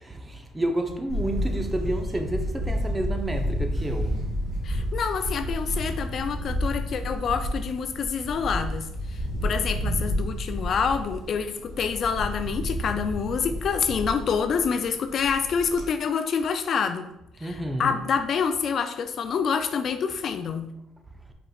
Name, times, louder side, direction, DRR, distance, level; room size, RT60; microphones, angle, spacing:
voice 1, 0.0-4.2 17.4-18.0, right 1 dB, 15° right, 0.7 m, -30 dB
Camera, 1.1-15.9, equal, 65° right, 1.5 m, -30 dB
voice 2, 4.6-17.1 17.4-20.7, left 6 dB, 55° left, 0.3 m, -27 dB
5.1 x 4.2 x 2.3 m
cardioid pair, 90°, 0 cm